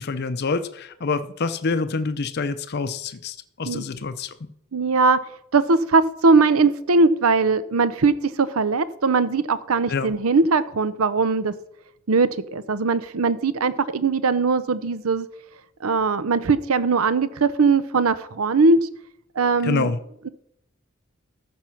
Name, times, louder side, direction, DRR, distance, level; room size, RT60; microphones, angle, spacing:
voice 1, 0.0-4.4 9.9-10.1 19.6-20.0, left 4 dB, 50° left, 11 dB, 0.6 m, -26 dB
voice 2, 4.7-5.2 5.5-11.5 12.1-15.3 15.8-18.9 19.4-19.9, right 4 dB, 90° right, 15 dB, 0.7 m, -20 dB
14.0 x 5.4 x 5.8 m, 0.74 s
head